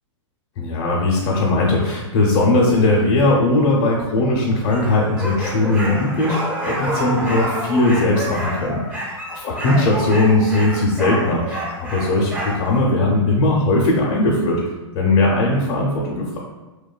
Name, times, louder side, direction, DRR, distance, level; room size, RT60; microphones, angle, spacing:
voice 1, 0.6-8.8 9.3-14.6 14.9-16.4, left 2 dB, 55° left, -3 dB, 0.5 m, -19 dB
sound 1, 4.7-12.8, equal, 10° right, 0.4 m, -28 dB
2.5 x 2.3 x 2.2 m, 1.1 s
hypercardioid pair, 130°, 16 cm